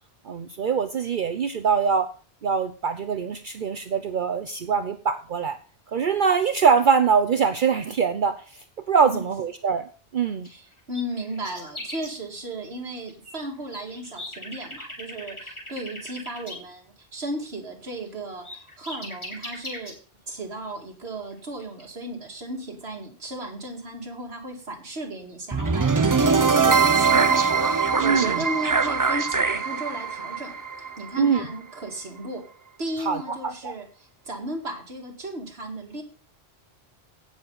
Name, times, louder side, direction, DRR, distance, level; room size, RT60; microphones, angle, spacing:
voice 1, 0.3-2.1 2.4-5.6 5.9-8.4 8.9-9.9 10.1-10.5 26.2-26.5 28.0-28.4 31.2-31.4 33.1-33.2 33.6-33.7, right 6 dB, 55° right, 8 dB, 0.8 m, -23 dB
sound 1, 10.2-10.5 10.7-12.2 12.8-13.4 13.7-16.6 18.0-18.1 18.4-19.9 21.3-21.4 21.6-21.8, left 1 dB, 25° left, 3.1 m, -38 dB
voice 2, 10.4-20.0 20.3-30.5 31.0-32.4 32.8-36.0, right 1 dB, 75° right, 2 dB, 2.4 m, -35 dB
sound 2, 25.5-31.6, right 5 dB, 25° right, 0.5 m, -22 dB
16.5 x 6.8 x 4.0 m, 0.38 s
omnidirectional pair, 1.1 m